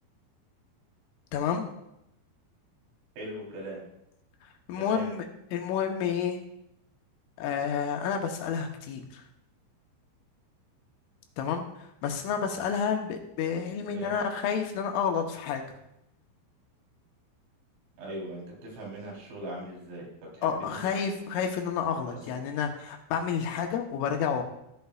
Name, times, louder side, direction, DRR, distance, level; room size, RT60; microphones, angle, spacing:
voice 1, 1.3-1.7 4.4-5.2 5.5-6.4 7.4-9.2 11.4-15.6 20.4-24.4, left 7 dB, 80° left, 3 dB, 3.3 m, -30 dB
voice 2, 3.2-3.8 4.8-5.1 13.9-14.1 18.0-20.1 20.3-20.5, right 1 dB, 65° right, -3 dB, 5.9 m, -39 dB
15.0 x 11.0 x 2.4 m, 0.82 s
omnidirectional pair, 5.9 m